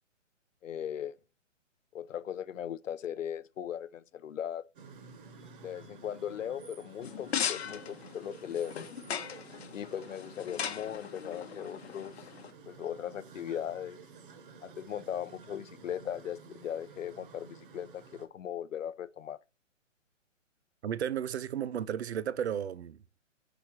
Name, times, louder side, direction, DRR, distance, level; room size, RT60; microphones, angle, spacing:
voice 1, 0.6-1.2 1.9-4.6 5.6-8.7 9.7-12.3 12.7-14.0 14.6-19.4, left 9 dB, 80° left, 0.6 m, -38 dB
sound 1, 4.8-18.3, right 4 dB, 45° right, 1.1 m, -52 dB
sound 2, 7.0-12.5, left 8 dB, 55° left, 0.9 m, -38 dB
voice 2, 20.8-23.0, right 9 dB, 60° right, 0.6 m, -33 dB
5.0 x 4.9 x 4.2 m
hypercardioid pair, 140°, 38 cm